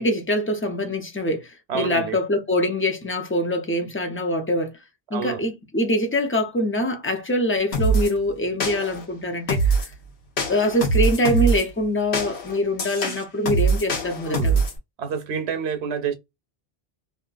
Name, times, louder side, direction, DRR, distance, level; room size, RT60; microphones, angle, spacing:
voice 1, 0.0-4.7 5.1-9.7 10.5-14.6, left 1 dB, 20° left, 0.4 m, -24 dB
voice 2, 1.7-2.2 5.1-5.4 14.3-14.5 15.0-16.1, right 6 dB, 80° right, 1.0 m, -28 dB
sound 1, 7.7-8.1 8.6-9.1 9.5-9.9 10.4-11.6 12.1-14.8, right 3 dB, 75° left, 1.2 m, -23 dB
2.7 x 2.4 x 2.3 m
omnidirectional pair, 1.1 m